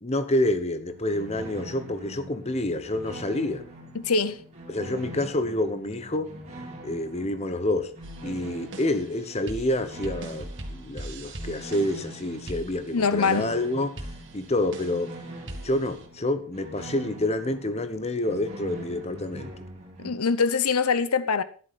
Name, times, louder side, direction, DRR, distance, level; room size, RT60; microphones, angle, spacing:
voice 1, 0.0-3.7 4.7-6.3 6.8-7.9 8.2-14.0 14.3-15.1 15.6-19.5, left 1 dB, 30° left, 1.0 m, -28 dB
sound 1, 0.9-20.1, right 1 dB, 30° right, 3.0 m, -43 dB
voice 2, 3.9-4.4 12.9-13.5 20.0-21.4, left 5 dB, 90° left, 0.8 m, -23 dB
sound 2, 8.0-16.1, right 1 dB, 55° right, 2.0 m, -41 dB
13.0 x 11.0 x 4.2 m
head